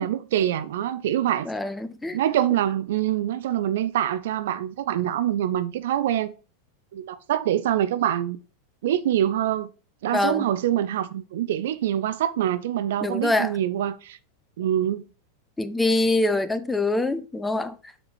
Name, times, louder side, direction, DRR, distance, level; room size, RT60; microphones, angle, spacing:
voice 1, 0.0-1.5 2.1-6.3 6.9-8.4 8.8-9.7 10.0-14.2 14.6-15.1, right 11 dB, 55° right, 0.4 m, -25 dB
voice 2, 1.4-2.2 10.1-10.5 13.0-13.5 15.6-17.7, left 2 dB, 10° left, 0.5 m, -24 dB
7.0 x 3.3 x 4.3 m
figure-of-eight pair, 90°, 0 cm